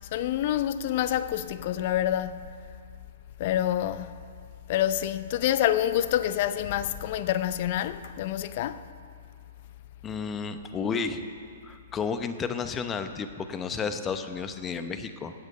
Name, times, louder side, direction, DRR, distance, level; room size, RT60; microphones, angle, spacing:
voice 1, 0.1-2.4 3.4-4.2 4.7-8.8, left 11 dB, 50° left, 0.6 m, -27 dB
voice 2, 10.0-11.2 11.6-15.3, left 5 dB, 20° left, 0.8 m, -32 dB
16.0 x 8.1 x 5.6 m
hypercardioid pair, 125°, 0 cm